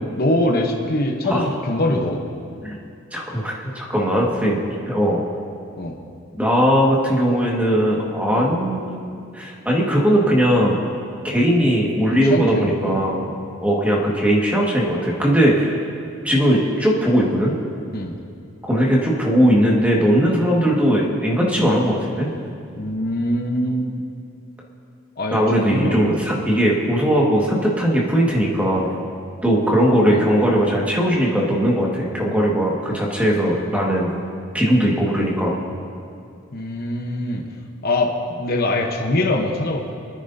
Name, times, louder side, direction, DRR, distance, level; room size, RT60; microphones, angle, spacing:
voice 1, 0.2-2.2 4.2-4.3 5.8-6.0 8.3-8.5 12.1-13.0 17.9-18.1 22.8-23.9 25.2-26.1 26.4-26.5 30.1-30.3 36.5-37.5 37.8-39.9, left 1 dB, 50° left, 1 dB, 1.0 m, -23 dB
voice 2, 3.1-4.6 4.9-5.2 6.4-8.9 9.3-10.8 11.2-13.2 13.6-15.7 16.2-17.5 18.6-22.3 25.3-28.9 29.4-34.1 34.5-35.5, equal, 5° right, -3 dB, 1.7 m, -19 dB
26.5 x 9.9 x 2.7 m, 2.5 s
head